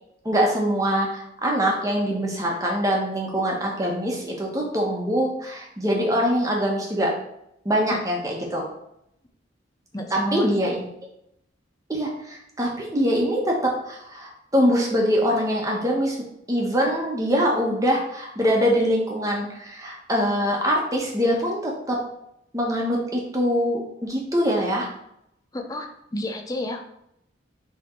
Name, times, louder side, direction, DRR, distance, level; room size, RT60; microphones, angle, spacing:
voice 1, 0.2-7.1 7.6-8.7 10.1-10.9 11.9-16.2 16.5-22.0 22.5-24.9, equal, 20° right, -1 dB, 1.3 m, -23 dB
voice 2, 9.9-10.5 25.5-26.8, left 1 dB, 20° left, 4 dB, 0.6 m, -30 dB
6.3 x 3.4 x 4.5 m, 0.78 s
head